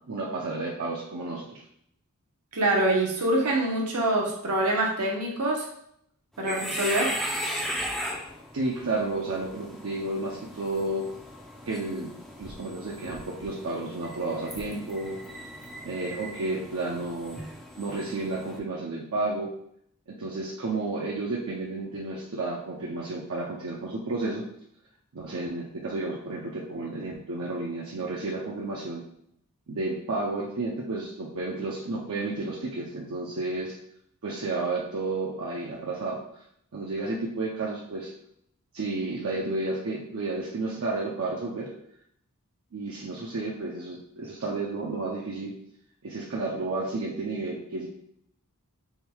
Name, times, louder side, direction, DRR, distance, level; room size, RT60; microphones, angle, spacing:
voice 1, 0.1-1.6 8.5-11.1 11.7-15.2 15.8-17.4 17.8-19.5 20.1-24.4 25.1-29.0 29.7-33.8 34.2-36.4 36.7-38.1 38.7-41.7 42.7-45.5 46.0-47.9, right 2 dB, 65° right, -3 dB, 0.6 m, -32 dB
voice 2, 2.5-5.7 6.4-7.2, right 1 dB, 85° right, -1 dB, 1.0 m, -25 dB
sound 1, 6.3-18.6, equal, ahead, 0.4 m, -37 dB
3.5 x 2.3 x 4.5 m, 0.71 s
head